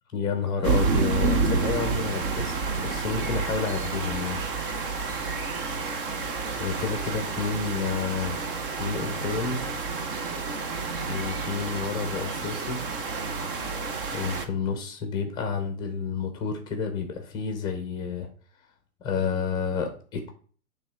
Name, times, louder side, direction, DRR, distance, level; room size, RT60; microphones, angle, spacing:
voice 1, 0.1-4.4 6.6-9.6 11.1-12.8 14.1-18.3 19.0-20.3, left 6 dB, 10° left, 6 dB, 0.7 m, -30 dB
sound 1, 0.6-14.5, right 4 dB, 35° right, 0.8 m, -29 dB
8.8 x 3.5 x 4.5 m, 0.42 s
hypercardioid pair, 150°, 47 cm